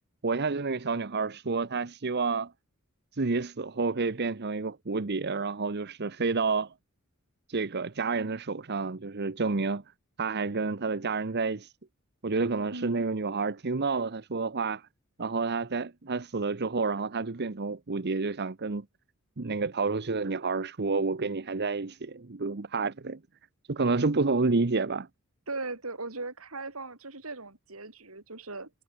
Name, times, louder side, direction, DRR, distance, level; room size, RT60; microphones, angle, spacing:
voice 1, 0.2-2.5 3.1-6.7 7.5-9.8 10.2-11.7 12.2-14.9 15.2-18.8 19.4-23.2 23.7-25.1, right 4 dB, 50° right, 0.9 m, -29 dB
voice 2, 12.7-13.1 25.5-28.7, right 3 dB, 80° right, 5.0 m, -38 dB
head